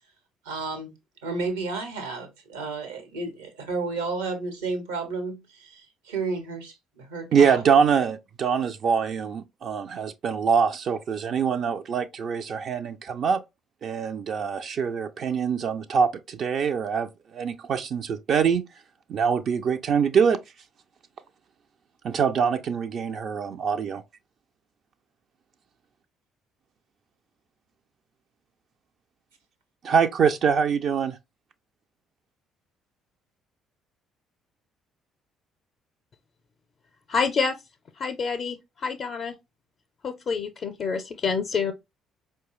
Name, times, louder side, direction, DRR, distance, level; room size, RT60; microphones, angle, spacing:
voice 1, 0.4-0.9 1.2-7.6, right 3 dB, 80° right, 0.9 m, -32 dB
voice 2, 7.3-13.4 13.8-18.6 19.1-20.4 22.0-24.0 29.8-31.2, right 6 dB, 55° right, 0.4 m, -24 dB
voice 3, 37.1-37.6 38.0-39.3 40.0-41.7, left 5 dB, 50° left, 0.5 m, -27 dB
4.6 x 2.2 x 2.9 m
hypercardioid pair, 50°, 0 cm